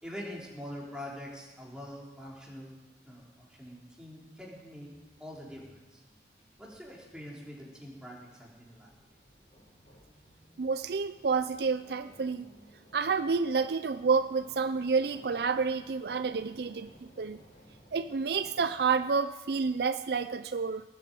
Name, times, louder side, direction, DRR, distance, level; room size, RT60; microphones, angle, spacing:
voice 1, 0.0-2.7 3.0-4.9 5.2-6.0 6.6-8.9, equal, 5° right, -4 dB, 3.6 m, -44 dB
sound 1, 4.4-19.0, equal, 45° left, 6.5 m, -59 dB
voice 2, 10.6-12.5 12.9-16.9 17.2-17.4 17.9-20.8, right 5 dB, 60° right, 11 dB, 0.5 m, -29 dB
19.0 x 9.1 x 7.6 m, 1.2 s
head